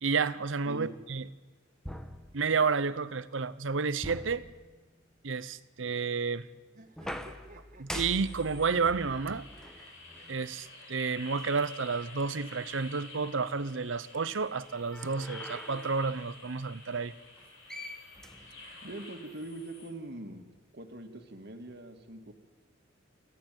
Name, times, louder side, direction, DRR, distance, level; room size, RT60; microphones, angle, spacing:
voice 1, 0.0-1.3 2.3-4.4 5.2-6.5 7.8-9.5 10.3-17.1, right 5 dB, 80° right, 16 dB, 0.8 m, -31 dB
sound 1, 1.8-2.9 4.0-5.2 7.0-10.5 11.4-11.5 14.7-16.0 17.4-17.5 17.7-19.0, left 1 dB, 5° left, 1.3 m, -44 dB
sound 2, 6.7-9.3 9.5-10.9 11.2-11.3 11.6-11.7 12.0-12.2 13.2-14.2, right 2 dB, 45° right, 1.9 m, -58 dB
sound 3, 8.2-19.9, left 2 dB, 75° left, 5.1 m, -50 dB
voice 2, 18.8-20.5 20.7-22.3, right 1 dB, 60° right, 6 dB, 2.2 m, -42 dB
29.5 x 11.5 x 9.3 m, 1.3 s
head